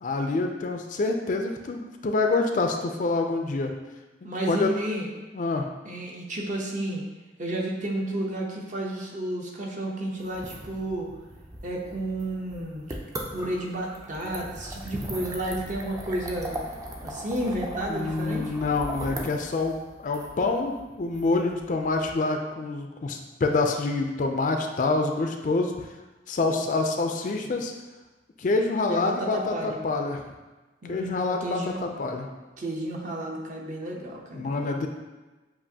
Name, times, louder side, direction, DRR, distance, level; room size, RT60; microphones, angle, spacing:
voice 1, 0.0-3.7 4.2-4.7 5.3-5.7 17.7-25.9 26.3-27.7 28.4-30.2 30.9-32.3 34.3-34.9, left 3 dB, 45° left, 4 dB, 0.4 m, -27 dB
voice 2, 4.2-5.1 5.8-7.0 7.4-11.1 11.6-12.9 13.3-16.6 17.0-18.5 28.9-29.8 30.8-31.8 32.6-34.9, right 1 dB, 45° right, -1 dB, 0.7 m, -32 dB
sound 1, 10.2-22.1, right 1 dB, 20° right, 0.4 m, -39 dB
7.4 x 2.5 x 2.7 m, 1.2 s
head